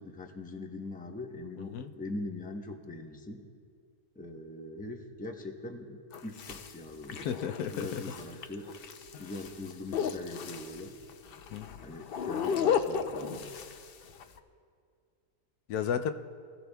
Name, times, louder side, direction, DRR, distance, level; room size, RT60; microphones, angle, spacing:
voice 1, 0.0-3.5 4.1-7.3 7.7-8.7 9.2-11.0 11.8-13.5, left 2 dB, 10° left, 2 dB, 0.7 m, -42 dB
voice 2, 1.6-1.9 7.1-8.0 11.5-11.7 15.7-16.1, left 8 dB, 85° left, 8 dB, 1.2 m, -33 dB
sound 1, 6.1-14.4, left 7 dB, 65° left, 0.5 m, -34 dB
24.0 x 16.0 x 2.3 m, 2.2 s
omnidirectional pair, 1.6 m